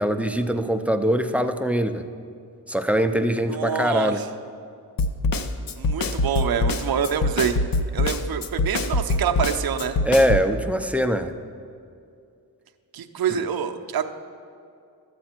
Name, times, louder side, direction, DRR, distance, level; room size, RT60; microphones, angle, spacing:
voice 1, 0.0-2.0 2.7-4.2 10.1-11.3 13.3-13.4, equal, 5° right, 7 dB, 0.5 m, -22 dB
voice 2, 3.5-4.3 5.8-7.6 7.9-10.0 12.9-14.1, right 7 dB, 60° right, 6 dB, 0.7 m, -26 dB
Snare drum, 5.0-10.5, left 2 dB, 55° left, 0.7 m, -24 dB
12.5 x 7.6 x 4.4 m, 2.5 s
cardioid pair, 70°, 41 cm